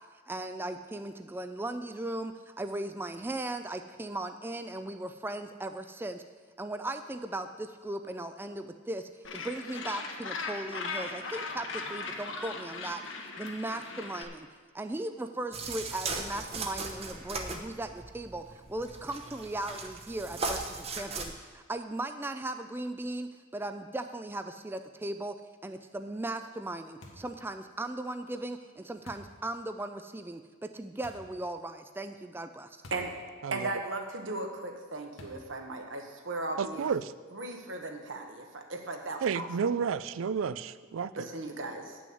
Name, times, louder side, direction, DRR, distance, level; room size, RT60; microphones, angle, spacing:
voice 1, 0.3-6.2 6.6-13.0 13.3-14.5 14.7-25.4 25.6-32.8, right 1 dB, 10° right, 8 dB, 0.3 m, -37 dB
Gull seagull, 9.2-14.2, left 4 dB, 70° left, 1.1 m, -38 dB
sound 1, 15.5-21.3, right 3 dB, 30° right, 0.8 m, -38 dB
sound 2, 27.0-27.4 29.1-29.4 31.0-31.4 32.8-33.2 33.5-33.6 35.2-35.6, left 1 dB, 90° left, 1.5 m, -50 dB
voice 2, 33.5-36.9 37.3-39.5 41.2-42.0, right 2 dB, 70° right, 3 dB, 1.2 m, -37 dB
voice 3, 36.6-37.1 39.2-41.3, right 6 dB, 85° right, 15 dB, 0.4 m, -31 dB
9.4 x 6.2 x 7.8 m, 1.5 s
head